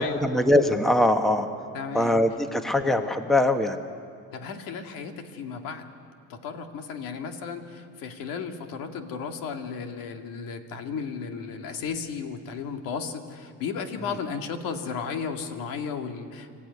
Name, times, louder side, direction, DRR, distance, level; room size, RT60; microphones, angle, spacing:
voice 1, 0.0-1.5 1.9-3.8, left 1 dB, ahead, 7 dB, 1.1 m, -22 dB
voice 2, 1.7-2.2 4.3-5.9 6.3-16.5, left 6 dB, 75° left, 5 dB, 2.1 m, -34 dB
25.5 x 15.0 x 9.6 m, 2.4 s
cardioid pair, 120°, 35 cm